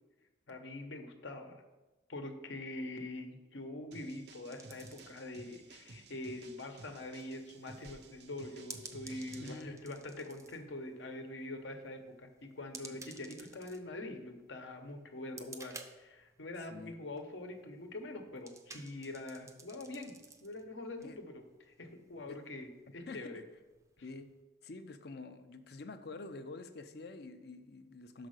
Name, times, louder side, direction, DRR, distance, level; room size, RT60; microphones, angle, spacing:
voice 1, 0.5-1.6 2.1-20.1 20.4-23.4, left 2 dB, 75° left, 5 dB, 1.0 m, -44 dB
sound 1, 3.9-9.6, right 3 dB, 60° right, 0.7 m, -55 dB
sound 2, 4.5-24.4, right 3 dB, 15° right, 0.5 m, -56 dB
voice 2, 9.4-9.9 16.7-16.9 21.0-21.2 22.3-22.4 23.1-23.2 24.0-24.3 24.6-28.3, left 3 dB, 55° left, 9 dB, 0.6 m, -47 dB
6.4 x 4.9 x 6.4 m, 1.1 s
head